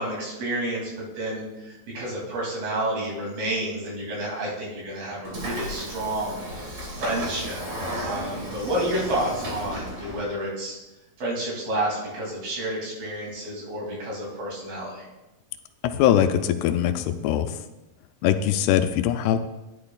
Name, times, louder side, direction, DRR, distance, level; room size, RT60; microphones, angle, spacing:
voice 1, 0.0-6.4 7.0-7.6 8.0-10.8 11.2-15.1, right 1 dB, 65° right, -4 dB, 4.5 m, -30 dB
Train / Sliding door, 5.2-10.3, equal, 35° right, 2.1 m, -34 dB
voice 2, 15.8-17.6 18.2-19.4, left 10 dB, 85° left, 9 dB, 2.6 m, -22 dB
11.5 x 11.0 x 2.4 m, 1.0 s
omnidirectional pair, 4.7 m